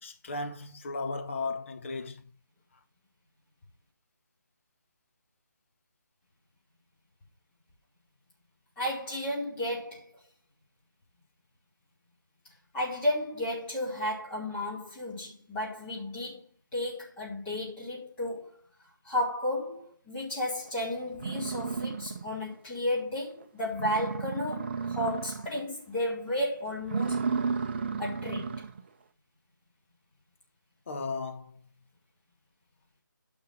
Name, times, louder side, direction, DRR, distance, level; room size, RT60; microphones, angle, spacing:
voice 1, 0.0-2.3 30.9-31.6, left 3 dB, 40° left, 1.4 m, -35 dB
voice 2, 8.8-10.1 12.7-16.4 16.7-18.6 19.0-27.2 28.0-28.6, left 1 dB, 10° left, 4.5 m, -33 dB
sound 1, 20.7-20.8 21.1-22.5 22.9-23.0 23.4-23.5 23.7-25.6 26.0-26.3 26.8-28.8, right 5 dB, 35° right, 0.9 m, -33 dB
9.3 x 6.3 x 5.9 m
figure-of-eight pair, 155°, 11 cm